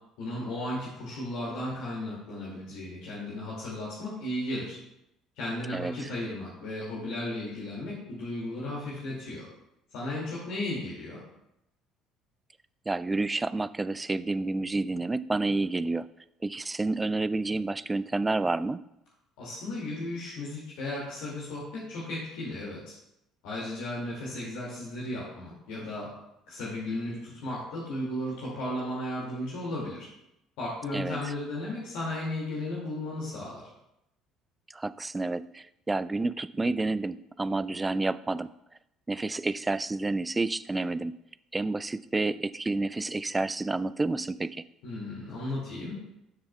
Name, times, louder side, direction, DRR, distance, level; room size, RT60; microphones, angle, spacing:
voice 1, 0.2-4.8 5.4-9.5 9.9-11.2 19.4-22.9 23.4-26.1 26.5-30.1 30.6-33.7 44.8-46.0, left 1 dB, 60° left, -6 dB, 2.1 m, -35 dB
voice 2, 5.7-6.1 12.9-16.1 16.4-18.8 30.9-31.2 34.7-38.5 39.1-41.1 41.5-44.6, right 3 dB, 15° right, 16 dB, 0.3 m, -29 dB
12.5 x 6.7 x 2.2 m, 0.84 s
figure-of-eight pair, 55°, 0 cm